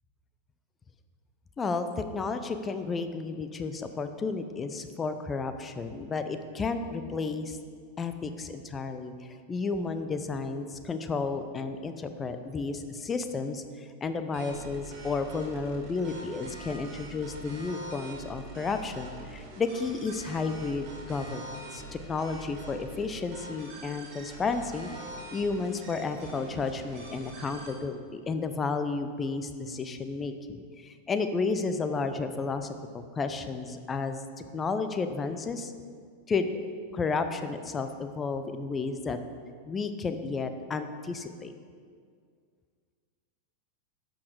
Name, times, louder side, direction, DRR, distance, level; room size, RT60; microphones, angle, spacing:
voice 1, 1.6-7.6 8.0-9.1 9.5-21.8 22.1-24.9 25.3-35.7 36.3-36.6 36.9-39.2 39.7-41.5, left 4 dB, 20° left, 9 dB, 0.6 m, -32 dB
sound 1, 14.3-27.7, right 2 dB, 40° right, 2.4 m, -44 dB
11.5 x 6.4 x 4.8 m, 2.1 s
figure-of-eight pair, 90°, 0 cm